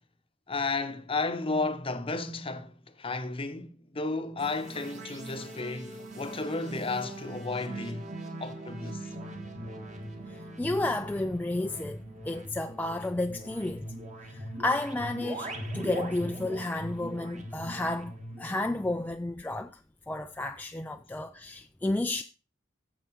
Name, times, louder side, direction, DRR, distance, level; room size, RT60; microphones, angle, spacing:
voice 1, 0.5-8.1 8.4-9.1, left 3 dB, 30° left, 0.8 m, -33 dB
sound 1, 4.4-19.1, right 1 dB, 40° right, 1.8 m, -41 dB
voice 2, 10.3-13.9 14.3-18.1 18.4-19.7 20.1-22.2, left 2 dB, 10° left, 0.3 m, -32 dB
8.7 x 7.2 x 4.6 m
head